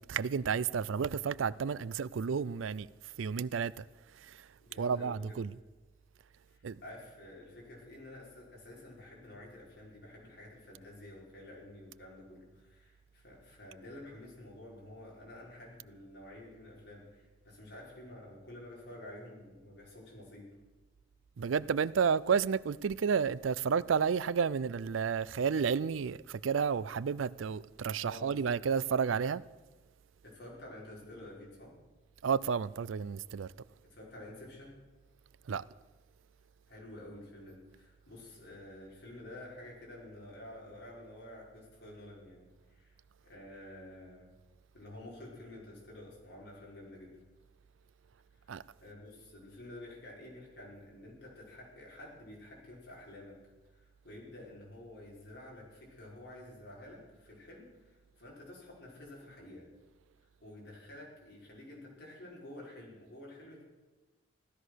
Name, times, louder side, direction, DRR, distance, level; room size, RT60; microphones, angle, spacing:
voice 1, 0.1-2.9 3.2-3.8 4.8-5.5 6.6-6.8 21.4-29.4 32.2-33.5 35.5-35.6 48.5-48.6, right 6 dB, 85° right, 0.4 m, -31 dB
voice 2, 4.6-5.4 6.5-20.5 28.0-28.7 30.2-31.7 33.9-34.8 36.7-44.3 44.7-47.2 48.4-53.4 53.7-59.7 60.4-63.6, left 1 dB, 60° left, 5.3 m, -50 dB
16.0 x 12.5 x 6.4 m
head